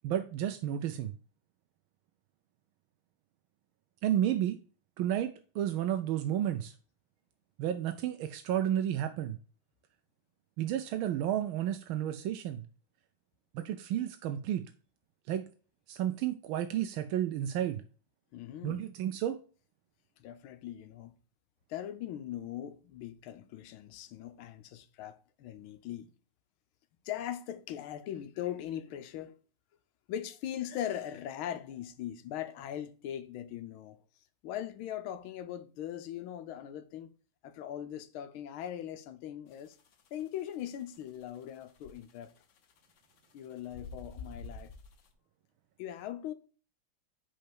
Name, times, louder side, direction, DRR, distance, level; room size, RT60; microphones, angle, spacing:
voice 1, 0.0-1.2 4.0-4.6 5.0-6.7 7.6-9.4 10.6-12.6 13.5-14.7 15.3-15.4 15.9-17.8 18.6-19.4, right 11 dB, 85° right, 1.4 m, -32 dB
voice 2, 18.3-18.8 20.2-21.1 21.7-26.1 27.0-29.3 30.1-34.0 34.4-37.1 37.4-39.8 40.1-42.3 43.3-44.7 45.8-46.3, left 11 dB, 90° left, 1.5 m, -40 dB
sound 1, 39.5-45.1, left 3 dB, 60° left, 0.8 m, -48 dB
5.3 x 4.4 x 6.0 m
omnidirectional pair, 2.2 m